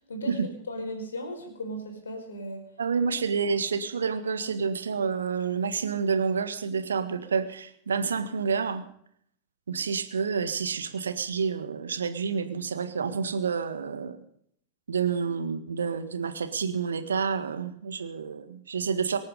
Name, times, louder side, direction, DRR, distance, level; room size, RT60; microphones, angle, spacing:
voice 1, 0.7-2.6, equal, 70° left, 4 dB, 4.7 m, -36 dB
voice 2, 2.8-8.8 9.7-14.2 14.9-19.2, right 5 dB, 70° right, 10 dB, 1.6 m, -29 dB
25.0 x 9.1 x 5.3 m, 0.66 s
figure-of-eight pair, 90°, 0 cm